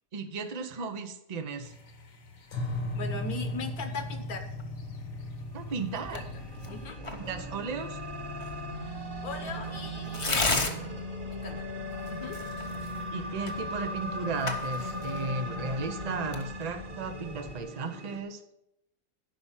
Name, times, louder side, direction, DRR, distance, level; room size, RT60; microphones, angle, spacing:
voice 1, 0.1-1.7 5.5-6.3 7.1-8.0 13.1-18.4, right 4 dB, 70° right, 7 dB, 0.3 m, -35 dB
sound 1, 1.6-6.9, left 1 dB, 75° left, 2.1 m, -37 dB
voice 2, 2.9-4.5 5.9-6.2 6.7-7.0 8.7-10.9 11.2-11.7 12.0-12.4, left 4 dB, 60° left, 8 dB, 1.4 m, -40 dB
sound 2, 5.1-18.2, equal, 35° right, 1.1 m, -38 dB
Tearing, 6.0-17.6, left 3 dB, 25° left, 0.7 m, -37 dB
10.5 x 5.6 x 7.3 m, 0.83 s
omnidirectional pair, 1.9 m